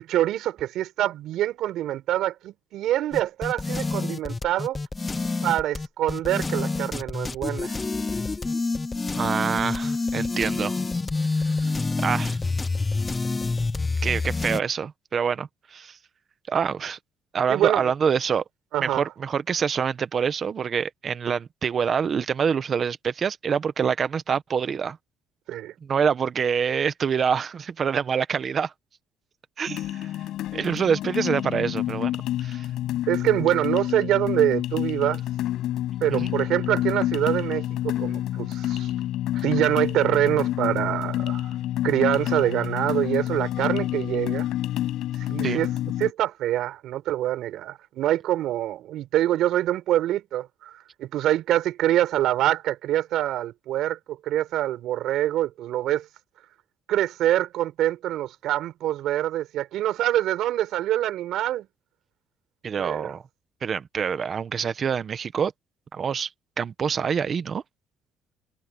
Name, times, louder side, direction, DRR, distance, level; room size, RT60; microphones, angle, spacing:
voice 1, 0.0-4.8 5.4-7.8 17.5-17.9 18.7-19.1 25.5-25.7 33.1-35.2 36.0-38.9 39.4-41.5 41.8-44.5 45.3-45.7 46.0-50.7 51.0-56.1 56.9-61.7 62.8-63.1, right 13 dB, 70° right, 5.4 m, -25 dB
sound 1, 3.1-14.6, left 3 dB, 20° left, 0.7 m, -27 dB
voice 2, 9.1-10.7 11.2-11.7 12.0-12.4 14.0-16.0 16.5-17.0 17.3-18.4 18.8-25.0 25.8-28.7 29.6-30.1 30.5-32.1 32.4-32.7 36.1-36.3 45.4-45.6 62.6-63.2 63.6-65.5 65.9-66.3 66.6-67.6, right 7 dB, 40° right, 1.3 m, -26 dB
sound 2, 29.7-46.1, left 13 dB, 70° left, 5.7 m, -28 dB
cardioid pair, 125°, 0 cm